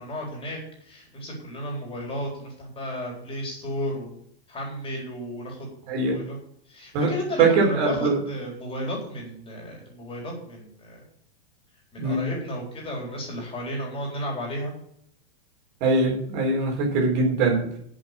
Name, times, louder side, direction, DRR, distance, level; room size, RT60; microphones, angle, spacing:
voice 1, 0.0-5.7 6.1-6.4 6.7-11.0 11.9-14.7, equal, 15° left, -2 dB, 4.2 m, -33 dB
voice 2, 7.4-8.2 12.0-12.2 15.8-17.8, right 3 dB, 50° right, 0 dB, 4.0 m, -22 dB
7.9 x 7.8 x 8.3 m, 0.69 s
hypercardioid pair, 140°, 31 cm